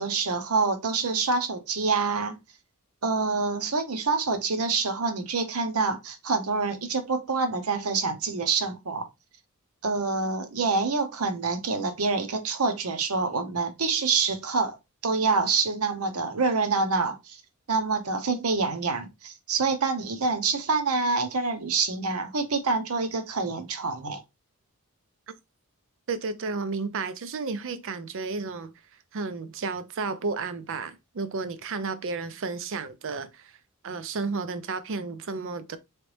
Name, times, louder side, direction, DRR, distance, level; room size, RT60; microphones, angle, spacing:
voice 1, 0.0-2.4 3.0-9.1 9.8-14.8 15.0-17.4 17.7-24.2, right 4 dB, 80° right, 0.8 m, -26 dB
voice 2, 26.1-28.7 29.1-33.5 33.8-35.8, right 4 dB, 65° right, 0.5 m, -32 dB
3.9 x 3.3 x 3.2 m
head